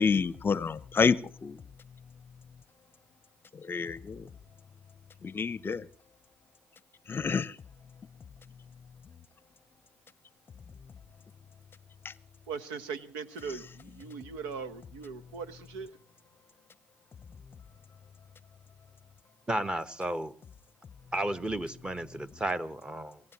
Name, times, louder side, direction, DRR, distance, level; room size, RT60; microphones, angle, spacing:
voice 1, 0.0-1.6 3.6-4.3 5.2-5.8 7.1-7.5 12.0-12.1, left 5 dB, 35° left, 19 dB, 0.7 m, -28 dB
voice 2, 12.5-15.9, right 5 dB, 80° right, 14 dB, 1.1 m, -40 dB
voice 3, 19.5-20.3 21.1-23.2, right 1 dB, 15° right, 13 dB, 1.2 m, -33 dB
28.0 x 16.0 x 3.0 m, 0.38 s
hypercardioid pair, 60°, 7 cm